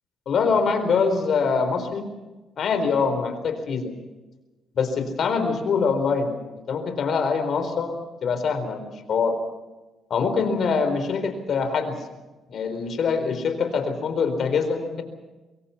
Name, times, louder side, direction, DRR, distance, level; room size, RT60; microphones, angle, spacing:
voice 1, 0.3-2.1 2.6-3.9 4.7-8.0 8.2-9.4 10.1-12.0 12.5-15.0, left 5 dB, 60° left, 8 dB, 4.1 m, -24 dB
25.0 x 22.0 x 5.8 m, 1.1 s
cardioid pair, 90°, 0 cm